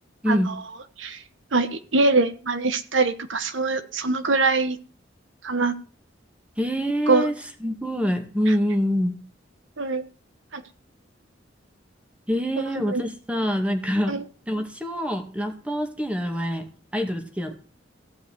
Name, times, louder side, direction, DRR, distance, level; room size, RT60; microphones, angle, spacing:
voice 1, 0.2-0.5 6.6-9.2 12.3-14.2 14.5-17.5, equal, 5° right, 5 dB, 2.1 m, -25 dB
voice 2, 1.5-4.8 5.4-5.7 7.1-7.3 9.8-10.0 10.5-10.6 12.9-13.1 14.1-14.2, right 3 dB, 85° right, 10 dB, 1.2 m, -23 dB
15.0 x 5.5 x 9.6 m, 0.41 s
head